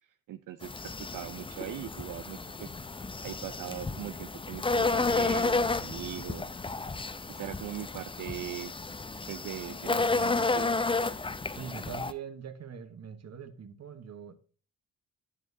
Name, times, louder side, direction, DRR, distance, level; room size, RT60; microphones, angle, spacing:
voice 1, 0.0-2.8 3.2-6.5 7.3-8.7 9.3-10.7, right 12 dB, 75° right, 0.5 m, -41 dB
sound 1, 0.6-12.1, left 3 dB, 15° left, 0.6 m, -31 dB
voice 2, 9.9-10.5 11.4-14.4, right 7 dB, 55° right, 1.3 m, -43 dB
10.5 x 7.3 x 2.7 m
cardioid pair, 90°, 32 cm